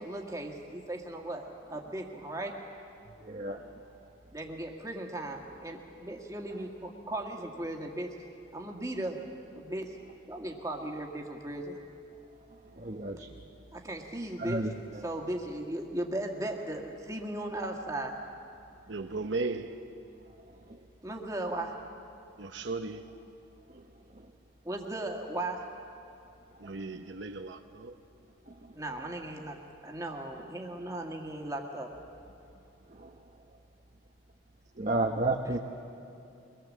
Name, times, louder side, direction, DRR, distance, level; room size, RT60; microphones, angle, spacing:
voice 1, 0.0-2.6 4.3-8.1 8.5-9.2 9.6-10.0 10.3-11.8 13.7-14.7 15.0-18.2 21.0-21.8 24.6-25.7 28.7-31.9, right 1 dB, 15° right, 1.8 m, -37 dB
voice 2, 3.2-3.7 12.7-13.4 14.4-15.0 20.7-20.8 23.7-23.8 28.5-28.7 32.9-33.2 34.8-35.6, right 2 dB, 40° right, 0.9 m, -32 dB
voice 3, 18.9-19.7 22.4-23.1 26.6-27.9, right 3 dB, 65° right, 0.8 m, -36 dB
23.5 x 21.0 x 7.5 m
head